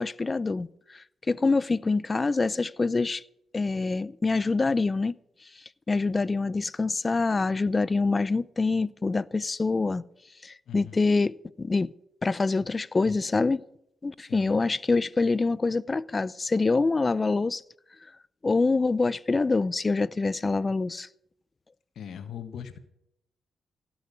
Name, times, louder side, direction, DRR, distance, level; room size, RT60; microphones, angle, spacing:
voice 1, 0.0-3.2 3.5-5.1 5.9-10.0 10.4-11.9 12.2-13.6 14.0-17.6 18.4-21.1, left 3 dB, 35° left, 0.5 m, -25 dB
voice 2, 10.7-11.1 14.3-14.6 21.9-22.8, left 8 dB, 75° left, 1.5 m, -40 dB
16.5 x 6.3 x 9.9 m
cardioid pair, 65°, 0 cm